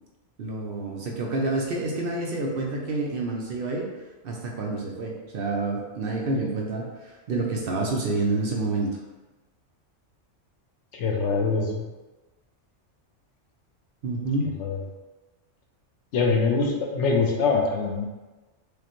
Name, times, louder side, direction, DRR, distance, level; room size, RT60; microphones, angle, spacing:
voice 1, 0.4-3.9 4.2-9.0 14.0-14.5, right 2 dB, 60° right, -1 dB, 0.7 m, -28 dB
voice 2, 10.9-11.8 14.6-14.8 16.1-18.1, left 4 dB, 80° left, 1 dB, 1.0 m, -23 dB
4.9 x 2.1 x 3.0 m, 1.2 s
omnidirectional pair, 1.2 m